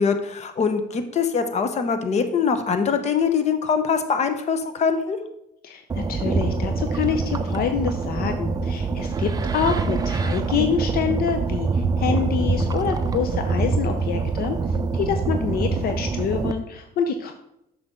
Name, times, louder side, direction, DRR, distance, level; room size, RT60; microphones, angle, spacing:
voice 1, 0.0-5.2, left 6 dB, 40° left, 8 dB, 0.9 m, -23 dB
voice 2, 5.6-14.6 14.9-17.3, left 7 dB, 65° left, 7 dB, 0.6 m, -26 dB
sound 1, 5.9-16.5, right 4 dB, 20° right, 0.5 m, -25 dB
7.6 x 6.1 x 3.7 m, 0.81 s
cardioid pair, 110°, 17 cm